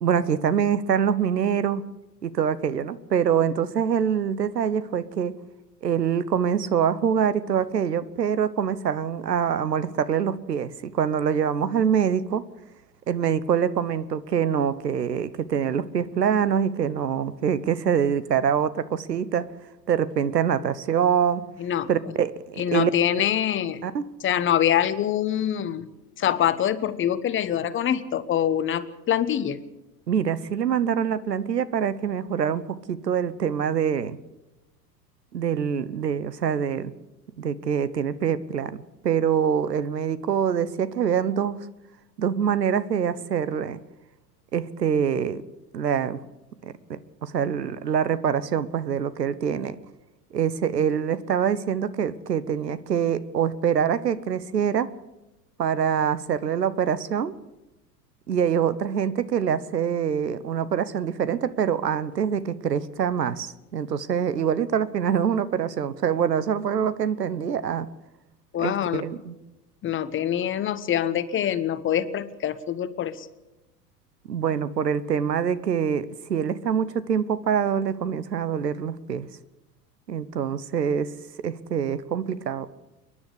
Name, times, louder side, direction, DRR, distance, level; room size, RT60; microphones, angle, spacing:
voice 1, 0.0-1.8 2.2-5.4 5.8-12.4 13.1-19.5 19.9-21.4 21.9-22.9 23.8-24.0 30.1-32.6 32.9-34.2 35.3-36.9 37.4-41.6 42.2-43.8 44.5-45.4 45.7-46.2 46.6-49.8 50.3-54.9 55.6-57.3 58.3-67.9 68.6-69.4 74.3-79.3 80.1-81.1 81.4-82.8, right 8 dB, 75° right, 16 dB, 1.2 m, -25 dB
voice 2, 22.6-23.8 24.2-25.9 26.2-29.6 68.5-69.0 69.8-73.3, left 10 dB, 25° left, 14 dB, 1.1 m, -25 dB
29.5 x 10.5 x 8.3 m, 0.99 s
figure-of-eight pair, 85°, 49 cm